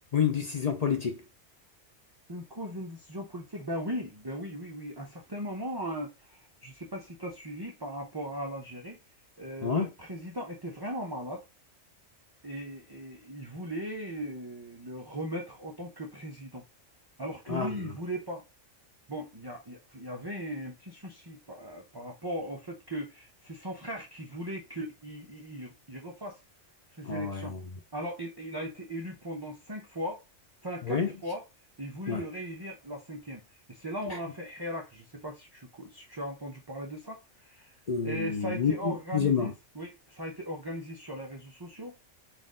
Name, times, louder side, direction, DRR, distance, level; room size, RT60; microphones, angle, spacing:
voice 1, 0.1-1.2 9.6-9.9 17.5-17.7 27.0-27.6 30.9-31.1 32.1-32.2 37.9-39.5, left 6 dB, 50° left, 0.4 m, -28 dB
voice 2, 2.3-9.0 9.4-11.5 12.4-16.6 17.2-18.5 19.1-26.4 27.0-27.6 27.9-30.2 30.6-31.4 31.8-37.7 38.0-42.0, equal, 25° right, 0.5 m, -38 dB
4.1 x 2.6 x 3.6 m
omnidirectional pair, 1.3 m